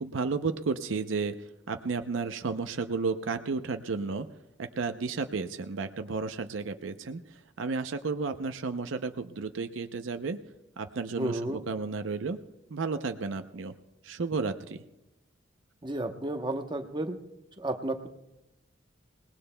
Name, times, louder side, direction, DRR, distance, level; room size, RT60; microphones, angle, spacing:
voice 1, 0.0-1.3 1.7-4.3 4.6-10.4 10.8-12.4 12.7-13.7 14.0-14.8, right 4 dB, 80° right, 8 dB, 0.6 m, -32 dB
voice 2, 11.2-11.6 15.8-17.2 17.6-18.1, right 1 dB, 25° right, 6 dB, 0.9 m, -32 dB
26.5 x 19.5 x 2.2 m, 0.95 s
head